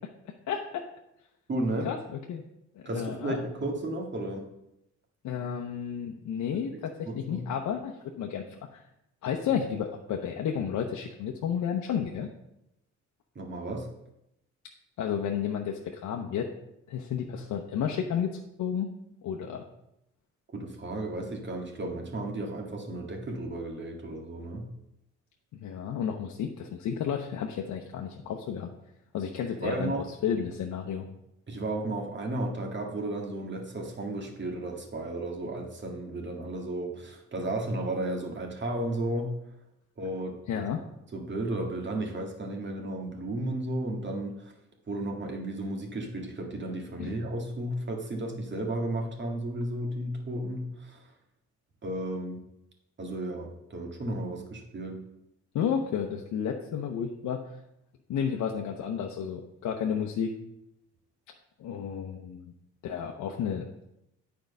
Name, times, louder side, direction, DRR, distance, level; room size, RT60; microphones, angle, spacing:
voice 1, 0.5-0.8 1.8-2.0 2.3-2.4 2.7-3.4 5.2-8.4 8.7-8.8 9.2-12.3 15.0-16.5 16.9-18.9 19.2-19.6 25.5-28.7 29.1-30.0 30.2-31.1 40.5-40.8 47.0-47.2 55.5-57.6 58.1-60.3 61.6-62.5 62.8-63.6, left 8 dB, 75° left, 2 dB, 0.8 m, -32 dB
voice 2, 1.5-1.9 2.8-4.5 6.7-7.4 13.3-13.9 20.5-24.7 29.4-30.0 31.5-39.3 40.0-40.6 41.1-44.5 44.9-51.1 51.8-52.4 53.0-55.0, right 1 dB, 40° right, 1 dB, 1.8 m, -34 dB
8.9 x 4.7 x 5.3 m, 0.86 s
cardioid pair, 90°, 30 cm